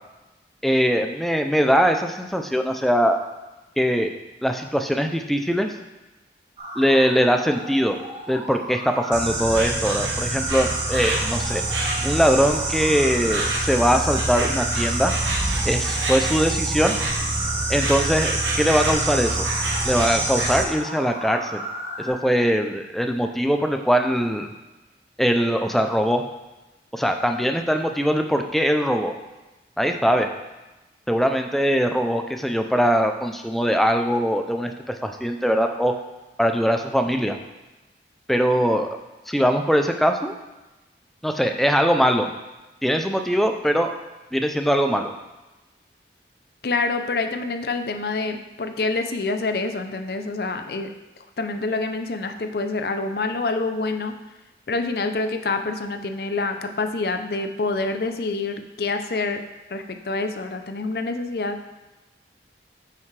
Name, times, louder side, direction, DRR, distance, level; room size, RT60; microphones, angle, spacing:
voice 1, 0.6-3.2 3.8-4.1 4.4-5.7 6.8-8.0 8.3-11.6 12.0-15.1 15.6-16.9 17.7-19.5 19.8-21.6 22.0-24.5 25.2-26.2 26.9-29.1 29.8-30.3 31.1-35.9 36.4-37.4 38.3-38.9 39.3-40.3 41.2-42.3 42.8-43.9 44.3-45.1, equal, ahead, 4 dB, 0.4 m, -21 dB
sound 1, 6.6-22.1, equal, 35° right, 1.4 m, -35 dB
Insect, 9.1-20.6, right 2 dB, 90° right, 1.0 m, -25 dB
voice 2, 46.6-50.9 51.4-54.1 54.7-59.4 59.7-61.6, left 3 dB, 60° left, 7 dB, 0.5 m, -26 dB
8.9 x 5.8 x 3.3 m, 1.1 s
head